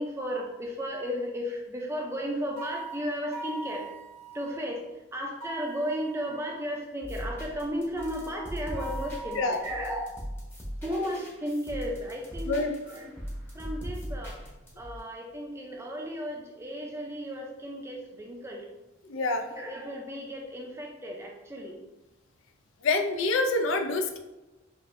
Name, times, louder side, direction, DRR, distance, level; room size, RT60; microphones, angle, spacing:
voice 1, 0.0-3.8 4.3-4.8 5.1-10.1 10.8-12.5 12.9-13.1 13.5-14.4 14.8-18.7 19.5-21.8, equal, 15° right, 0 dB, 0.5 m, -34 dB
sound 1, 2.6-4.7 5.4-6.7 8.0-10.1, right 2 dB, 80° right, 0.6 m, -42 dB
sound 2, 7.0-15.0, equal, 10° left, 0.8 m, -40 dB
voice 2, 19.0-19.4 22.8-24.2, left 3 dB, 70° left, 5 dB, 0.4 m, -26 dB
5.1 x 2.6 x 2.5 m, 1.0 s
head